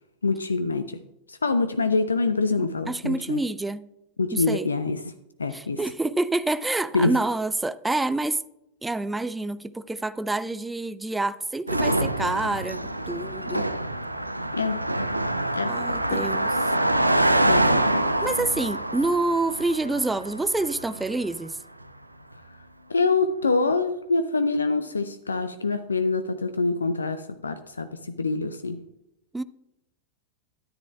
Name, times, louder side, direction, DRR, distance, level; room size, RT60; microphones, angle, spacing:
voice 1, 0.2-1.0 1.3-3.4 4.2-5.0 5.4-5.8 6.9-7.1 14.5-14.8 15.5-15.7 16.1-16.2 17.5-17.7 22.9-28.8, left 3 dB, 75° left, 0.5 m, -25 dB
voice 2, 2.6-3.9 4.3-4.7 5.5-8.4 8.8-13.7 15.7-16.5 18.2-21.6 29.3-29.4, right 2 dB, 5° right, 0.3 m, -27 dB
Car passing by, 11.7-21.2, right 1 dB, 85° right, 0.5 m, -25 dB
13.0 x 9.7 x 2.4 m
figure-of-eight pair, 90°, 0 cm